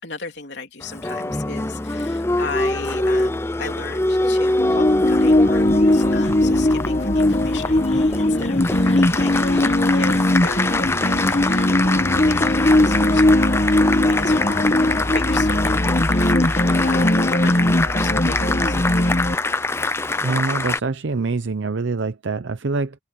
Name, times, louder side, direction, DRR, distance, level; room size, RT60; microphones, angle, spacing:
voice 1, 0.0-19.2, left 4 dB, 70° left, 3.3 m, -36 dB
Applause, 0.8-20.8, left 2 dB, 15° left, 0.6 m, -24 dB
sound 1, 4.6-19.3, left 1 dB, 35° left, 1.3 m, -19 dB
voice 2, 20.2-23.0, right 3 dB, 90° right, 0.7 m, -25 dB
open air
head